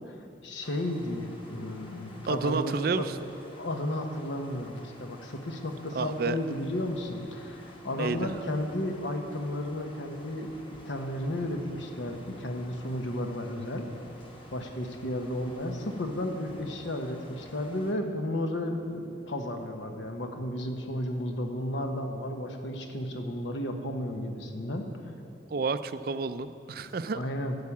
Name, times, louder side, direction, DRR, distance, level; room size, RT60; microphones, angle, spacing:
voice 1, 0.4-3.0 3.6-13.9 14.5-24.8 27.1-27.6, left 1 dB, 80° left, 4 dB, 1.2 m, -33 dB
sound 1, 0.6-17.9, left 1 dB, 25° left, 1.2 m, -51 dB
voice 2, 2.3-3.2 5.9-6.4 7.9-8.2 25.5-27.2, right 4 dB, 50° right, 12 dB, 0.4 m, -30 dB
12.0 x 8.2 x 7.3 m, 2.6 s
head